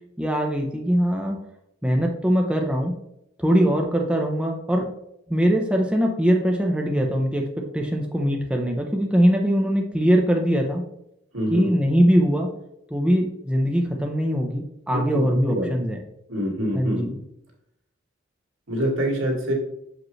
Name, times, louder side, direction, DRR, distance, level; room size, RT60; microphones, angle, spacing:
voice 1, 0.2-1.4 1.8-2.9 3.4-4.9 5.3-10.8 11.5-12.5 12.9-16.0 16.7-17.2, equal, 5° right, 0 dB, 0.6 m, -22 dB
voice 2, 11.3-11.7 14.9-15.7 16.3-17.2 18.7-19.5, equal, 85° right, -1 dB, 1.9 m, -26 dB
6.0 x 5.1 x 3.1 m, 0.78 s
head